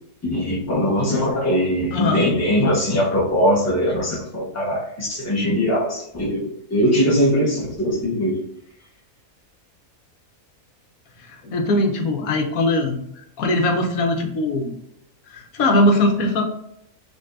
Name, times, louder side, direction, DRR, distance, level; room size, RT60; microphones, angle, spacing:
voice 1, 0.2-8.4, equal, 15° left, -4 dB, 0.8 m, -21 dB
voice 2, 1.9-2.2 11.2-13.0 13.4-14.7 15.3-16.4, left 1 dB, 80° left, 3 dB, 1.2 m, -20 dB
5.0 x 2.7 x 2.5 m, 0.75 s
omnidirectional pair, 1.5 m